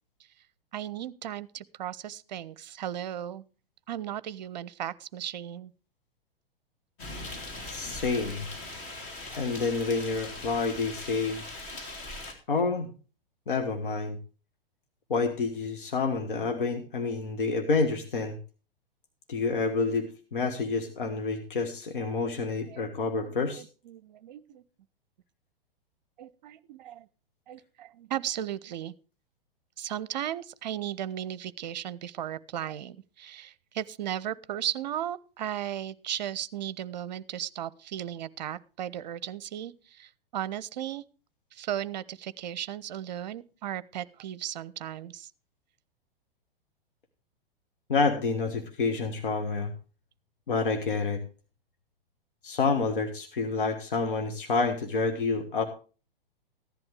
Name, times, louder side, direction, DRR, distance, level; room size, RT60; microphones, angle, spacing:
voice 1, 0.7-3.4 3.9-5.7 22.0-22.4 22.7-22.9 23.2-24.6 26.2-27.1 27.5-28.9 29.8-41.0 41.5-45.3, right 11 dB, 50° right, 19 dB, 0.7 m, -36 dB
sound 1, 7.0-12.3, left 2 dB, 30° left, 2.8 m, -40 dB
voice 2, 7.7-8.4 9.3-11.4 12.5-12.9 13.5-14.2 15.1-18.4 19.3-23.6 47.9-49.7 50.5-51.2 52.4-55.6, left 4 dB, 60° left, 5 dB, 1.5 m, -28 dB
15.0 x 10.5 x 3.3 m, 0.36 s
figure-of-eight pair, 105°, 29 cm